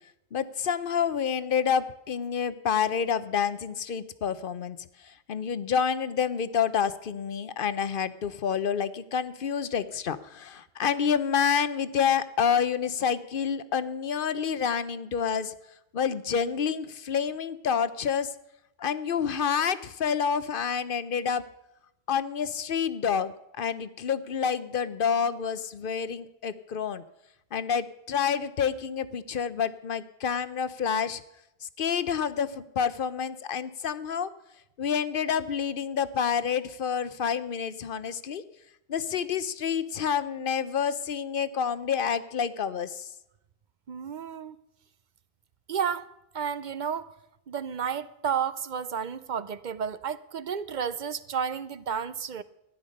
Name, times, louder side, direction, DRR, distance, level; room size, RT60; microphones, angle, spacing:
voice 1, 0.3-15.5 15.9-18.3 18.8-21.4 22.1-27.0 27.5-31.2 31.8-34.3 34.8-38.4 38.9-43.1, left 7 dB, 60° left, 15 dB, 0.8 m, -28 dB
voice 2, 43.9-44.6 45.7-46.1 46.3-47.1 47.5-52.4, right 7 dB, 55° right, 16 dB, 0.6 m, -31 dB
13.5 x 10.5 x 6.4 m, 0.85 s
omnidirectional pair, 1.1 m